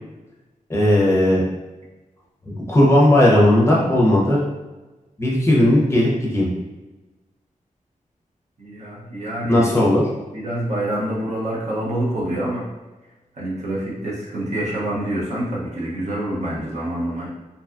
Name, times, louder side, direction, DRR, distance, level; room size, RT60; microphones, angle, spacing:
voice 1, 0.7-1.4 2.5-4.4 5.2-6.5 9.5-10.0, left 1 dB, 20° left, -5 dB, 0.6 m, -16 dB
voice 2, 8.6-9.9 10.3-12.7 13.4-17.3, right 1 dB, 55° right, -5 dB, 0.7 m, -26 dB
2.6 x 2.3 x 2.4 m, 1.2 s
wide cardioid pair, 125°, 14 cm